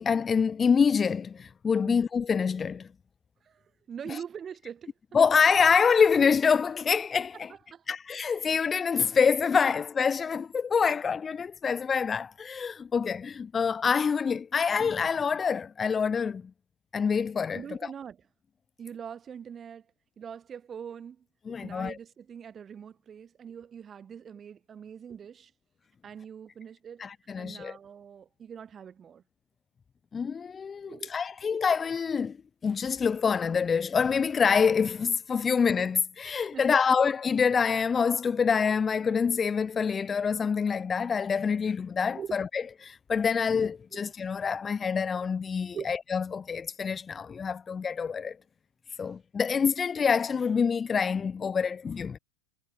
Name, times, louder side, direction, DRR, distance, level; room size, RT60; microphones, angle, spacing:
voice 1, 0.0-2.9 4.1-4.2 5.1-7.5 7.9-16.4 16.9-17.9 21.5-22.0 27.0-27.8 30.1-32.4 32.6-48.4 49.0-52.2, left 6 dB, 20° left, 0.5 m, -26 dB
voice 2, 3.9-4.9 7.5-7.8 17.5-18.2 18.8-19.8 20.2-21.2 21.6-25.5 26.0-27.1 27.4-29.2 30.9-31.1 36.5-36.8 42.1-42.3 43.9-44.1 45.7-45.9, right 7 dB, 25° right, 3.2 m, -42 dB
hypercardioid pair, 95°, 0 cm